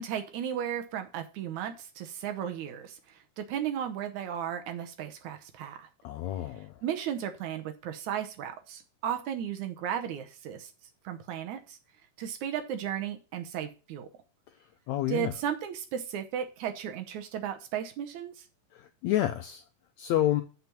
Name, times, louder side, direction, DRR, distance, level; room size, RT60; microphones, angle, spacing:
voice 1, 0.0-5.9 6.8-10.7 11.0-11.8 12.2-14.1 15.1-18.5, right 9 dB, 70° right, 2.1 m, -35 dB
voice 2, 6.0-6.7 14.9-15.3 18.7-19.6 20.0-20.4, left 13 dB, 90° left, 1.6 m, -29 dB
6.7 x 6.1 x 7.0 m
omnidirectional pair, 3.9 m